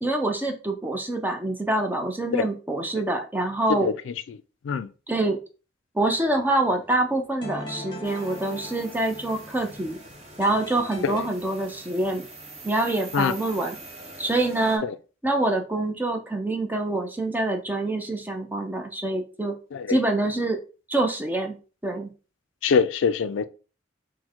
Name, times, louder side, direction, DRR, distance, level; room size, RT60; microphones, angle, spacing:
voice 1, 0.0-3.9 5.1-5.4 5.9-10.0 10.4-12.3 12.6-13.8 14.2-14.8 15.2-19.5 19.9-20.6 20.9-21.5 21.8-22.1, right 2 dB, 10° right, 0.5 m, -25 dB
sound 1, 6.2-11.2, left 2 dB, 25° left, 0.9 m, -42 dB
sound 2, 8.0-14.8, right 2 dB, 35° right, 1.2 m, -44 dB
voice 2, 22.6-23.4, left 6 dB, 85° left, 0.3 m, -24 dB
4.4 x 2.1 x 4.3 m
head